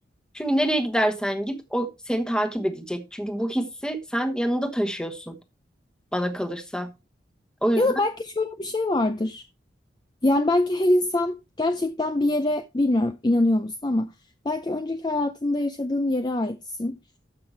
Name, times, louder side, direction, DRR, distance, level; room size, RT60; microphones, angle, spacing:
voice 1, 0.3-5.3 6.1-6.9 7.6-7.9, equal, 5° left, 1.1 m, -26 dB
voice 2, 7.8-9.4 10.2-14.1 14.4-17.0, left 2 dB, 25° left, 0.5 m, -24 dB
13.5 x 5.7 x 3.3 m
head